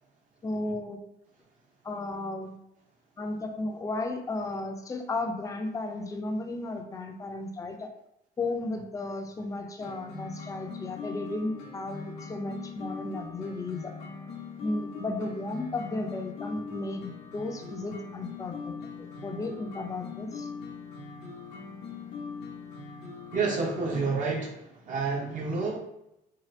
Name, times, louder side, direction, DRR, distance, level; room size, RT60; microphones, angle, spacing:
voice 1, 0.4-1.0 1.8-2.6 3.2-7.9 8.4-13.9 14.6-20.5, left 2 dB, 20° left, 4 dB, 0.4 m, -34 dB
sound 1, 9.8-24.2, left 5 dB, 80° left, 0.7 m, -41 dB
voice 2, 23.3-25.8, right 4 dB, 50° right, -1 dB, 0.8 m, -29 dB
2.8 x 2.4 x 3.1 m, 0.84 s
cardioid pair, 110°, 17 cm